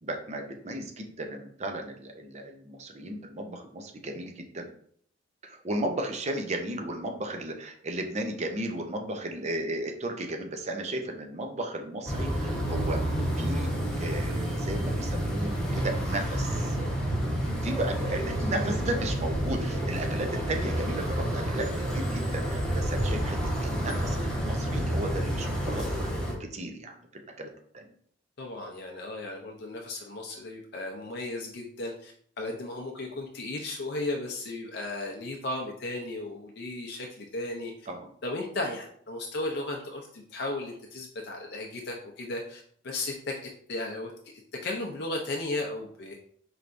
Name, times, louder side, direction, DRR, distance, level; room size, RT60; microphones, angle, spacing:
voice 1, 0.0-4.7 5.4-13.1 13.4-16.8 17.5-27.9 37.9-38.1, right 1 dB, 35° right, 4 dB, 0.6 m, -35 dB
sound 1, 12.1-26.3, equal, 5° left, 1.0 m, -29 dB
voice 2, 28.4-37.7 38.2-43.3 43.7-44.1 44.6-46.2, left 2 dB, 60° left, 0 dB, 0.5 m, -35 dB
4.6 x 3.3 x 2.6 m, 0.62 s
head